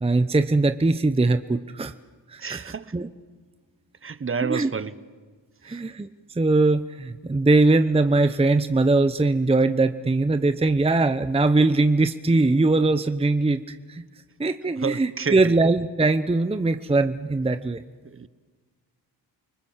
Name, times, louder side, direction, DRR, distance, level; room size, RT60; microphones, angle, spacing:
voice 1, 0.0-1.9 2.3-3.1 4.4-4.7 5.6-6.1 6.4-14.0 14.4-17.8, right 2 dB, 15° right, 0.8 m, -21 dB
voice 2, 2.4-2.9 4.0-4.9 5.6-5.8 14.8-15.6 18.0-18.3, right 5 dB, 30° right, 1.1 m, -30 dB
29.0 x 20.0 x 7.4 m
cardioid pair, 65°, 44 cm